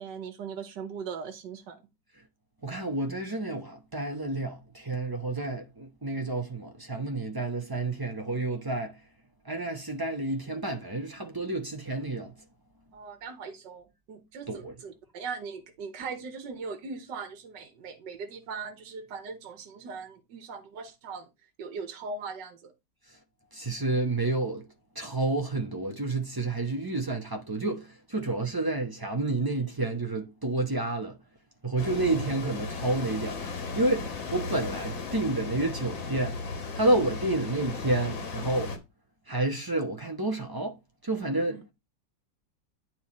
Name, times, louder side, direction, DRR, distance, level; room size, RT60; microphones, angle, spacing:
voice 1, 0.0-1.8 12.9-21.3 21.6-22.7 41.5-41.6, right 5 dB, 65° right, 1.8 m, -39 dB
voice 2, 2.6-8.9 9.5-12.3 14.5-14.7 23.5-24.6 25.0-31.1 31.6-33.5 33.8-36.3 36.7-38.7 39.3-40.7 41.0-41.7, right 2 dB, 30° right, 0.4 m, -30 dB
sound 1, 31.8-38.8, left 4 dB, 80° left, 2.4 m, -35 dB
9.3 x 4.5 x 4.3 m
omnidirectional pair, 2.1 m